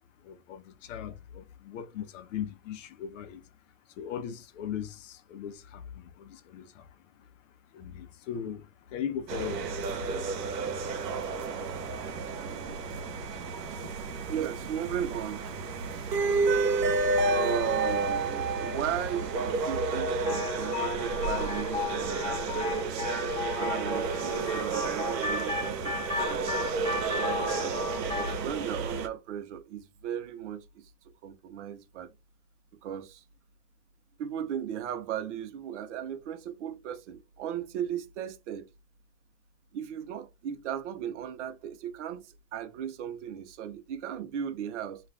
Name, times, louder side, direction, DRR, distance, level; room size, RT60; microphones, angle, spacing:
voice 1, 0.2-3.4 4.0-7.3 7.7-10.7 11.9-12.0 12.6-13.4 13.8-13.9 14.2-14.3, left 8 dB, 50° left, 0.6 m, -40 dB
sound 1, 9.3-29.1, right 3 dB, 85° right, 0.7 m, -31 dB
voice 2, 14.3-15.6 16.3-16.5 17.3-22.9 23.5-26.5 27.6-27.8 28.1-30.9 31.2-32.1 32.8-33.2 34.2-38.7 39.7-45.0, right 9 dB, 50° right, 0.6 m, -36 dB
sound 2, 20.2-28.4, left 4 dB, 10° left, 1.0 m, -35 dB
2.4 x 2.4 x 3.2 m
hypercardioid pair, 125°, 48 cm